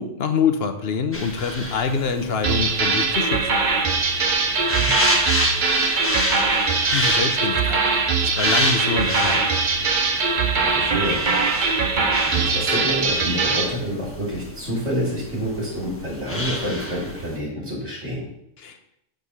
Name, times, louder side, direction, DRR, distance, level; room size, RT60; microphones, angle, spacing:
voice 1, 0.0-3.4 6.9-9.5 18.6-18.8, left 5 dB, 55° left, 7 dB, 1.0 m, -25 dB
sound 1, 1.1-17.4, left 1 dB, 10° left, 1.3 m, -30 dB
sound 2, 2.4-13.7, right 4 dB, 45° right, 0.8 m, -21 dB
voice 2, 4.4-5.0 6.9-7.0 10.5-11.2 11.9-18.3, equal, 60° right, -6 dB, 3.1 m, -28 dB
7.8 x 4.8 x 5.6 m, 0.81 s
omnidirectional pair, 1.3 m